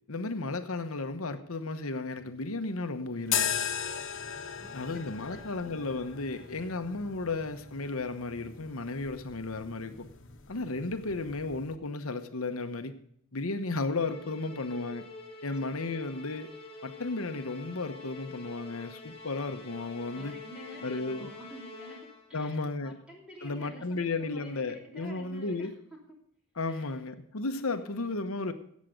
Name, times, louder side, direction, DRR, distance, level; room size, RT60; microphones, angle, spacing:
voice 1, 0.1-3.6 4.7-10.1 10.5-13.0 13.3-15.0 15.4-16.5 16.8-20.3 20.8-21.3 22.3-22.9 23.4-25.7 26.6-28.5, left 3 dB, 90° left, 8 dB, 1.0 m, -34 dB
sound 1, 3.2-11.8, left 8 dB, 60° left, 1.4 m, -38 dB
voice 2, 4.6-5.8 6.3-6.6 15.6-16.0 20.1-26.2 26.7-27.0 27.7-28.1, equal, 5° right, -2 dB, 3.0 m, -50 dB
Musical instrument, 13.9-22.4, left 3 dB, 25° left, 3.0 m, -47 dB
17.0 x 7.5 x 5.2 m, 0.67 s
head